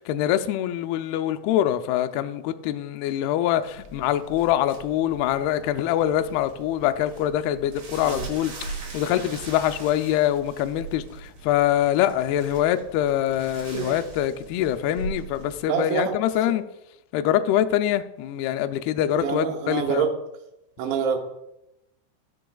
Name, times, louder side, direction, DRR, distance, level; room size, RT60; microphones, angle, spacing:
voice 1, 0.0-16.6 17.1-20.1, left 11 dB, 90° left, 2.2 m, -24 dB
sound 1, 3.6-15.6, right 3 dB, 50° right, 3.0 m, -40 dB
voice 2, 15.7-16.2 16.5-16.6 19.0-20.1 20.8-21.2, right 7 dB, 85° right, 3.4 m, -26 dB
18.0 x 6.9 x 2.3 m
omnidirectional pair, 5.1 m